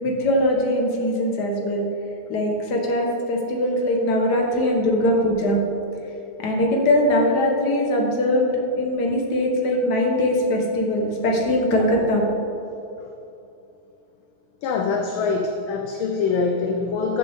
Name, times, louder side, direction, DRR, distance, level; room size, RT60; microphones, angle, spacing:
voice 1, 0.0-1.8 2.3-5.6 6.4-8.5 8.8-12.2, left 1 dB, 50° left, 0 dB, 1.9 m, -21 dB
voice 2, 14.6-17.2, left 4 dB, 70° left, 2 dB, 1.4 m, -24 dB
14.5 x 7.5 x 3.7 m, 2.8 s
omnidirectional pair, 2.4 m